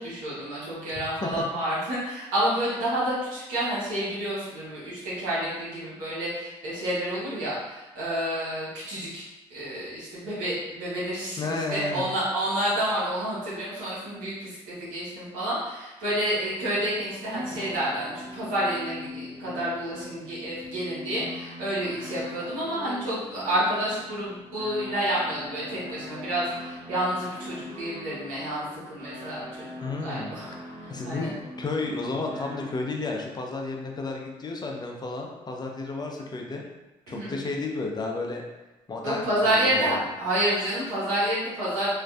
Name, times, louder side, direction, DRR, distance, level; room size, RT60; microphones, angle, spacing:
voice 1, 0.0-9.2 9.5-30.5 31.0-31.3 37.1-37.3 39.0-41.9, right 1 dB, 85° right, -10 dB, 0.9 m, -29 dB
voice 2, 11.4-12.1 29.8-30.3 30.9-36.6 37.1-38.4 38.9-40.0, left 3 dB, 30° left, 1 dB, 0.5 m, -32 dB
sound 1, 16.3-33.1, left 1 dB, 55° right, 0.8 m, -42 dB
2.5 x 2.2 x 2.3 m, 1.0 s
supercardioid pair, 60°, 14 cm